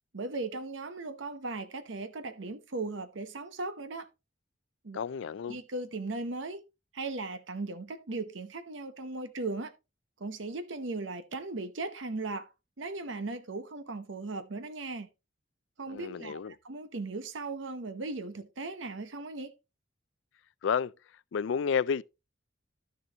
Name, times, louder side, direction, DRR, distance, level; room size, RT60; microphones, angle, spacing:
voice 1, 0.1-4.1 4.8-5.0 5.5-6.6 6.9-9.7 10.2-12.5 12.8-15.1 15.8-19.5, right 3 dB, 75° right, 0.9 m, -37 dB
voice 2, 4.9-5.6 15.9-16.5 20.6-20.9 21.3-22.0, left 6 dB, 70° left, 0.4 m, -30 dB
12.0 x 6.8 x 2.8 m
head